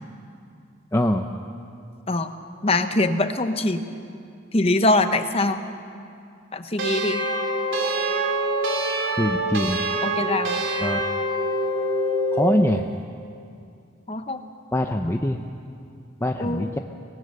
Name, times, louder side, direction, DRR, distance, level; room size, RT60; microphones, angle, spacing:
voice 1, 0.9-1.3 9.2-9.8 10.8-11.0 12.3-12.9 14.7-15.4 16.2-16.8, left 1 dB, 15° left, 4 dB, 0.6 m, -23 dB
voice 2, 2.6-3.8 4.5-5.6 6.5-7.2 10.0-10.6 14.1-14.4 16.4-16.7, left 2 dB, 30° left, 8 dB, 1.0 m, -23 dB
sound 1, 6.8-12.5, right 1 dB, 80° right, 2.9 m, -25 dB
24.5 x 18.5 x 6.7 m, 2.5 s
head